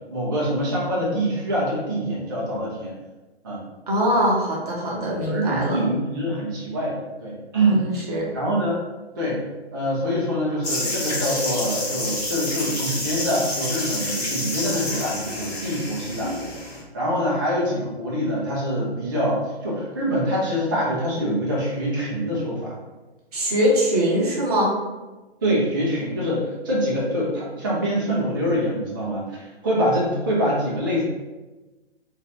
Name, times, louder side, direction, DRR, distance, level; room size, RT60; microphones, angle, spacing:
voice 1, 0.1-2.9 3.4-3.6 4.9-8.0 8.3-8.8 9.2-9.4 9.7-16.5 16.9-22.7 25.4-31.0, equal, 20° right, -6 dB, 0.4 m, -25 dB
voice 2, 3.9-5.9 7.7-8.3 23.3-24.7, equal, 35° right, -3 dB, 0.7 m, -22 dB
sound 1, 10.6-16.8, left 1 dB, 35° left, 0.9 m, -29 dB
2.4 x 2.3 x 2.9 m, 1.1 s
figure-of-eight pair, 130°, 32 cm